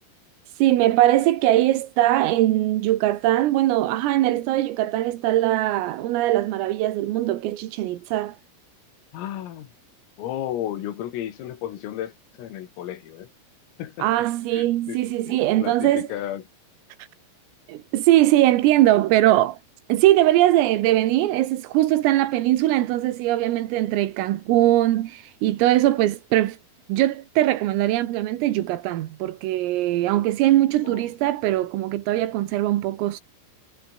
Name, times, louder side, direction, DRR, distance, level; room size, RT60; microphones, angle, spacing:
voice 1, 0.6-8.4 14.0-16.1 17.7-19.6 19.9-26.6 26.9-33.2, right 15 dB, 90° right, 4.2 m, -21 dB
voice 2, 9.1-9.7 10.2-12.1 12.4-13.3 13.8-14.1 14.5-15.0 15.3-16.4 30.8-31.1, left 11 dB, 90° left, 5.1 m, -33 dB
omnidirectional pair, 5.8 m